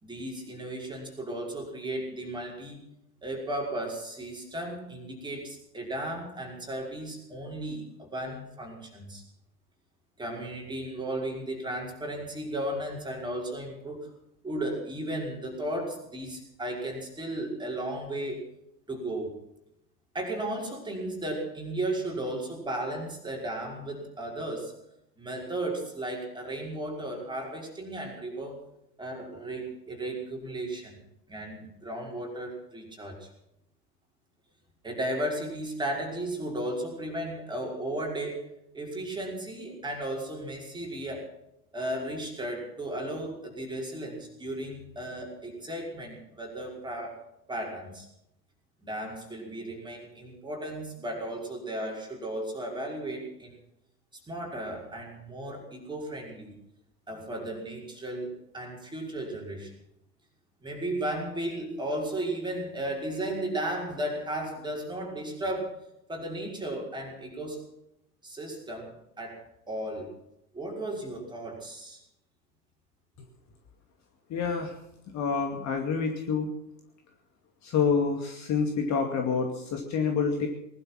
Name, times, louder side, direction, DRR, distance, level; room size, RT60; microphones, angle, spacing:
voice 1, 0.0-2.9 3.2-9.2 10.2-14.1 14.4-18.5 18.9-19.3 20.1-24.7 25.2-28.6 29.0-31.0 31.3-33.3 34.8-41.3 41.7-47.2 47.5-48.1 48.8-53.6 54.3-56.6 57.1-59.7 60.6-65.8 66.1-67.7 68.2-70.1 70.5-72.0, right 1 dB, 10° right, -1 dB, 5.5 m, -35 dB
voice 2, 74.3-74.7 75.1-76.5 77.6-80.5, left 5 dB, 35° left, 3 dB, 2.4 m, -27 dB
20.0 x 12.0 x 6.0 m, 0.82 s
figure-of-eight pair, 90°, 49 cm